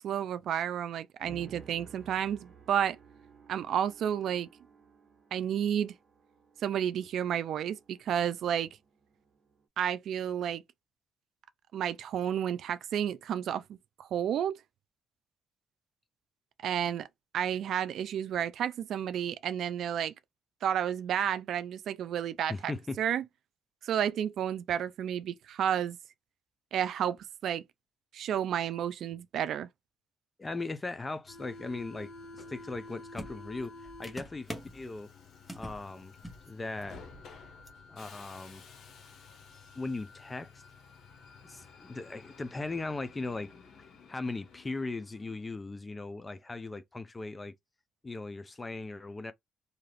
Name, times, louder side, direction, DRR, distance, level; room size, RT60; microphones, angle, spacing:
voice 1, 0.0-3.0 3.5-4.5 5.3-5.9 6.6-8.7 9.8-10.6 11.7-14.6 16.6-17.1 17.3-20.1 20.6-22.7 23.0-23.2 23.8-26.0 26.7-27.2 27.4-27.6 28.1-29.7, right 9 dB, 70° right, 0.3 m, -31 dB
sound 1, 1.2-9.6, right 6 dB, 40° right, 1.0 m, -56 dB
voice 2, 22.5-23.0 30.4-35.1 35.5-36.1 36.5-37.0 37.9-38.6 39.7-40.6 41.4-43.5 44.1-47.5 48.0-49.3, left 3 dB, 25° left, 0.5 m, -38 dB
Subway metro underground, 31.2-45.6, left 3 dB, 70° left, 0.8 m, -51 dB
sound 2, 32.7-32.8 33.2-34.8 35.5-35.8 36.1-36.5 36.7-36.9 37.7-37.8, equal, 5° left, 1.0 m, -43 dB
2.7 x 2.4 x 3.3 m
cardioid pair, 90°, 0 cm